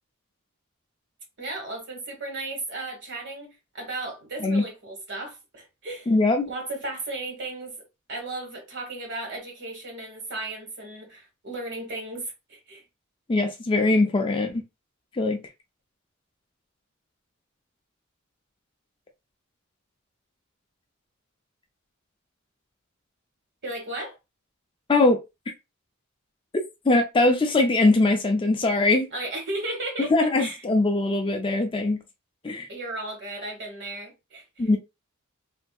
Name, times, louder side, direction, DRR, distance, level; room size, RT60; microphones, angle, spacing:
voice 1, 1.4-6.1 6.5-7.7 8.1-12.8 23.6-24.1 29.1-30.1 30.4-30.6 32.7-34.4, right 2 dB, 60° right, 1.5 m, -35 dB
voice 2, 6.1-6.5 13.3-14.6 15.1-15.4 24.9-25.2 26.8-29.1 30.1-32.0 32.4-32.7 34.6-34.8, left 2 dB, 25° left, 0.5 m, -21 dB
3.5 x 2.6 x 2.3 m
head